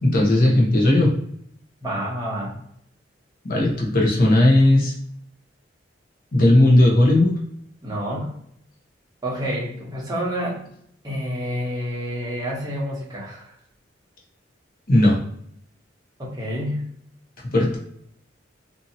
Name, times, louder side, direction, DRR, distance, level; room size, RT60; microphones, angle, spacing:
voice 1, 0.0-1.1 3.4-4.9 6.3-7.4 14.9-15.2 17.5-17.8, left 1 dB, 50° left, -2 dB, 0.8 m, -16 dB
voice 2, 1.8-2.6 7.8-8.3 9.2-10.6 11.0-13.5 16.2-16.9, equal, 20° right, -4 dB, 0.9 m, -28 dB
2.7 x 2.7 x 2.7 m, 0.68 s
head